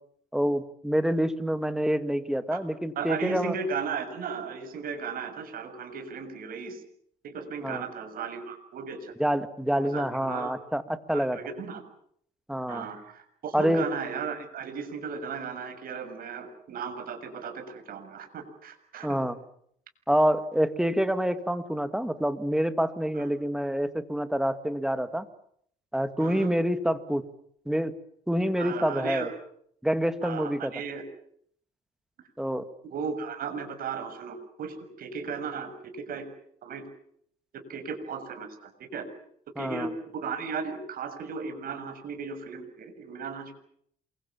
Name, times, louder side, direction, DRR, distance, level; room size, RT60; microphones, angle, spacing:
voice 1, 0.3-3.6 7.6-7.8 9.2-10.8 11.1-11.4 12.5-12.9 13.5-13.8 19.0-19.3 20.1-25.3 25.9-27.2 27.7-27.9 28.3-29.3 29.8-30.7 32.4-32.6 39.6-39.9, equal, 5° right, 11 dB, 2.2 m, -27 dB
voice 2, 2.9-6.8 7.2-9.1 9.7-10.5 11.1-11.8 12.7-19.2 23.1-23.3 26.2-26.5 28.5-29.3 30.2-31.0 32.8-36.3 36.6-36.8 37.5-39.1 39.6-43.6, right 5 dB, 60° right, 8 dB, 6.8 m, -36 dB
28.0 x 24.0 x 7.4 m, 0.67 s
cardioid pair, 110°, 17 cm